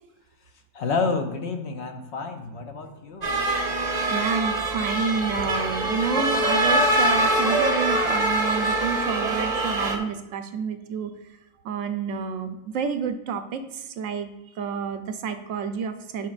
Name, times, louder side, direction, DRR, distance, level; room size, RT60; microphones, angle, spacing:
voice 1, 0.7-3.4, left 4 dB, 60° left, 5 dB, 0.9 m, -29 dB
sound 1, 3.2-10.0, right 1 dB, 40° right, 0.7 m, -23 dB
voice 2, 4.1-11.1 11.6-14.3 14.6-16.3, right 6 dB, 75° right, 8 dB, 1.0 m, -29 dB
10.5 x 4.2 x 2.4 m, 0.96 s
omnidirectional pair, 1.4 m